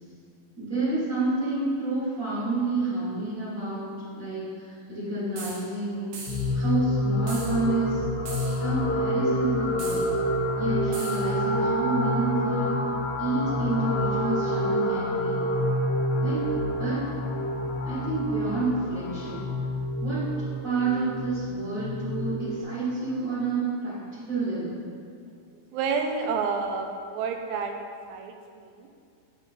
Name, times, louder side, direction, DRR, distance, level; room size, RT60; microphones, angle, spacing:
voice 1, 0.6-6.1 6.5-8.0 8.6-10.1 10.6-12.8 13.2-15.5 16.2-17.0 17.8-19.4 20.0-20.3 20.6-24.8, right 3 dB, 30° right, -12 dB, 1.9 m, -29 dB
sound 1, 5.4-5.6 6.1-6.5 7.3-7.6 8.3-8.6 9.8-10.1 10.9-11.3, right 3 dB, 65° right, 1.5 m, -39 dB
sound 2, 6.3-22.6, left 1 dB, 75° left, 1.4 m, -28 dB
voice 2, 25.7-27.8 28.1-28.9, right 5 dB, 90° right, 4 dB, 2.4 m, -29 dB
9.8 x 4.9 x 3.8 m, 2.3 s
omnidirectional pair, 3.9 m